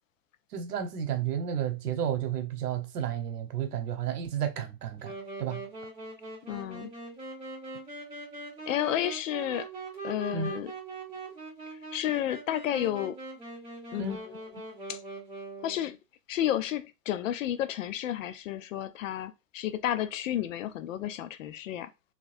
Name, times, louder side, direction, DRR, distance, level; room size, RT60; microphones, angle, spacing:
voice 1, 0.5-5.6 10.3-10.5 14.0-14.2, right 9 dB, 85° right, 1.1 m, -32 dB
Wind instrument woodwind instrument, 5.0-15.9, right 3 dB, 10° right, 2.0 m, -42 dB
voice 2, 6.5-6.9 8.7-9.7 10.0-10.7 11.9-13.2 13.9-14.4 14.9-15.0 15.6-16.0 16.3-21.9, left 11 dB, 55° left, 0.6 m, -31 dB
4.0 x 3.1 x 2.5 m
hypercardioid pair, 155°, 46 cm